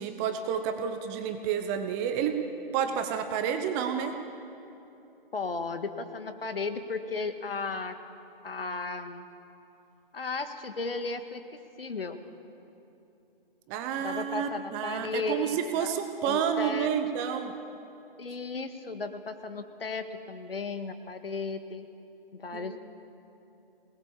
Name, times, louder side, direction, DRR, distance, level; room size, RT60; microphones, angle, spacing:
voice 1, 0.0-2.4 2.7-4.2 13.7-17.5 22.5-22.8, right 8 dB, 15° right, 7 dB, 0.8 m, -30 dB
voice 2, 5.3-7.9 8.4-9.3 10.1-11.4 11.8-12.2 14.0-15.9 16.3-16.9 18.2-21.9 22.3-22.8, left 4 dB, 75° left, 9 dB, 1.9 m, -35 dB
23.5 x 19.0 x 7.2 m, 2.9 s
figure-of-eight pair, 145°, 29 cm